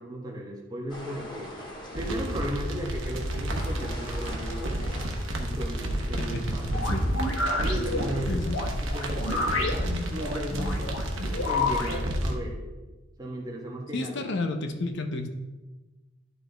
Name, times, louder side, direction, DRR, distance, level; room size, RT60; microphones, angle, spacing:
voice 1, 0.0-6.9 7.6-8.3 8.8-10.9 11.2-12.6 13.2-14.2, equal, 20° right, -1 dB, 1.1 m, -36 dB
sound 1, 0.9-11.5, equal, 25° left, 1.8 m, -44 dB
sound 2, 1.9-12.4, right 1 dB, 70° right, 1.0 m, -31 dB
sound 3, 6.7-12.0, left 2 dB, 80° left, 1.3 m, -30 dB
voice 2, 8.3-8.6 13.9-15.3, left 2 dB, 60° left, 5 dB, 0.7 m, -31 dB
11.0 x 4.0 x 3.4 m, 1.2 s
head